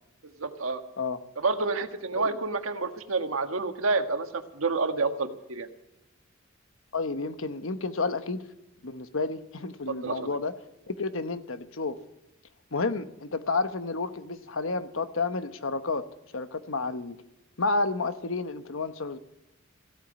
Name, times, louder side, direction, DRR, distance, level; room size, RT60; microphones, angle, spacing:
voice 1, 0.4-0.8 1.4-5.7 9.9-10.2, right 3 dB, 85° right, 7 dB, 1.5 m, -29 dB
voice 2, 6.9-8.5 8.8-10.5 10.9-12.0 12.7-16.0 16.3-17.2 17.6-19.2, left 3 dB, 75° left, 10 dB, 1.1 m, -30 dB
16.0 x 9.2 x 8.8 m, 0.89 s
head